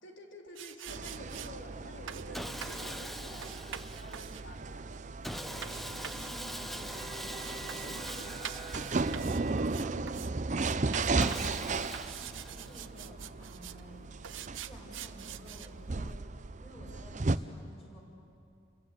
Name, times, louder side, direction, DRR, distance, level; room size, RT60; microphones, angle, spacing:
voice 1, 0.0-5.1, left 1 dB, 80° left, 2 dB, 3.3 m, -50 dB
sound 1, 0.6-1.5 2.1-2.3 2.6-2.9 3.4-10.3 10.6-11.6 11.9-13.8 14.2-15.7, right 10 dB, 90° right, 0.7 m, -45 dB
sound 2, 0.9-17.4, right 3 dB, 40° right, 0.6 m, -36 dB
Sawing, 2.3-4.4 5.2-9.8 11.2-13.0, equal, ahead, 0.7 m, -43 dB
voice 2, 5.4-5.7 6.0-8.2 8.7-10.3 12.4-14.0 14.5-16.2 16.6-18.0, equal, 35° left, -5 dB, 6.4 m, -53 dB
28.5 x 23.0 x 8.4 m, 2.5 s
head